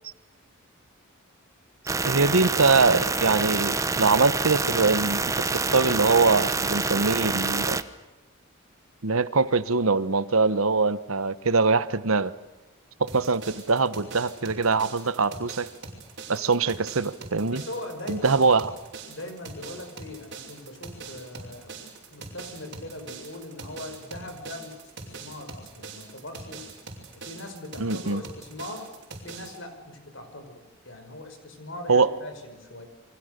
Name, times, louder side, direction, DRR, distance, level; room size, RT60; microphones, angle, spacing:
sound 1, 1.9-7.8, right 3 dB, 15° right, 0.9 m, -27 dB
voice 1, 2.0-7.8 9.0-12.3 13.0-15.7 16.3-17.6 18.1-18.7 27.8-28.2 31.9-32.1, right 4 dB, 75° right, 15 dB, 1.1 m, -23 dB
sound 2, 13.1-29.6, right 4 dB, 50° right, 5.7 m, -42 dB
voice 2, 17.4-18.6 19.1-26.6 27.1-28.9 29.2-32.9, left 1 dB, 60° left, 7 dB, 5.4 m, -41 dB
29.5 x 24.5 x 6.7 m, 1.2 s
head